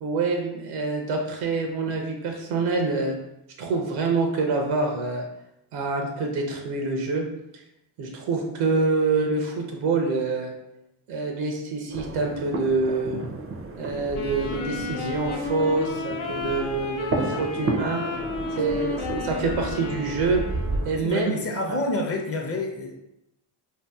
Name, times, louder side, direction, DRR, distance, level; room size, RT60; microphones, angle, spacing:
voice 1, 0.0-3.2 3.6-5.2 5.7-7.2 8.0-10.5 11.1-13.2 13.8-18.0 18.6-20.4 20.8-21.4 21.7-21.8, right 3 dB, 85° right, 2 dB, 0.6 m, -26 dB
sound 1, 11.9-21.0, right 2 dB, 30° right, 0.4 m, -32 dB
Wind instrument woodwind instrument, 14.1-21.0, left 3 dB, 75° left, 0.6 m, -32 dB
voice 2, 21.0-23.0, left 2 dB, 30° left, 2 dB, 0.6 m, -28 dB
2.7 x 2.5 x 2.2 m, 0.84 s
supercardioid pair, 65°, 49 cm